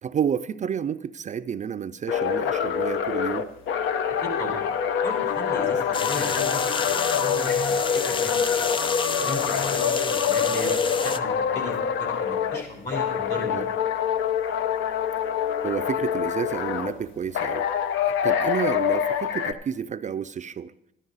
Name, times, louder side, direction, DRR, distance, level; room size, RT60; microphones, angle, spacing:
voice 1, 0.0-3.5 13.5-13.7 15.6-17.7 18.0-20.7, right 8 dB, 40° right, 11 dB, 0.4 m, -30 dB
sound 1, 2.1-12.6 12.9-16.9 17.3-19.5, left 8 dB, 80° left, 0.7 m, -25 dB
voice 2, 4.2-4.7 5.0-8.8 9.2-13.6, left 2 dB, 60° left, 2 dB, 3.9 m, -36 dB
sound 2, 5.9-11.2, left 4 dB, 25° left, 0.4 m, -30 dB
12.5 x 11.0 x 4.0 m, 0.79 s
cardioid pair, 90°, 20 cm